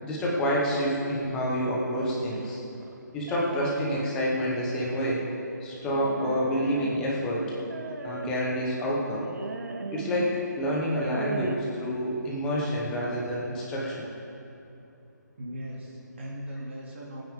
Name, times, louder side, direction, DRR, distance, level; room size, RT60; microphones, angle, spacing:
voice 1, 0.0-2.6 3.1-5.2 5.6-7.5 8.0-9.3 9.9-14.1, equal, 5° left, -5 dB, 1.1 m, -28 dB
sound 1, 2.3-4.1 4.7-5.2 5.9-7.2 7.7-8.5 9.2-10.4 10.8-11.6, right 3 dB, 65° right, 1.0 m, -37 dB
voice 2, 15.4-17.2, equal, 40° right, -4 dB, 2.8 m, -38 dB
21.5 x 9.4 x 3.7 m, 2.8 s
hypercardioid pair, 175°, 10 cm